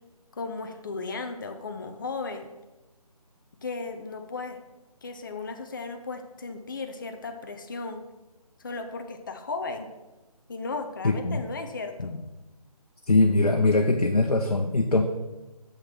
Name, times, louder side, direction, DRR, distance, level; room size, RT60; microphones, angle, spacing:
voice 1, 0.3-2.5 3.6-4.6 5.0-8.0 8.6-9.9 10.5-12.1, left 4 dB, 30° left, 6 dB, 0.6 m, -35 dB
voice 2, 11.0-11.4 12.0-12.2 13.1-15.0, left 2 dB, 85° left, 3 dB, 0.9 m, -22 dB
6.9 x 5.7 x 6.0 m, 1.1 s
figure-of-eight pair, 160°, 20 cm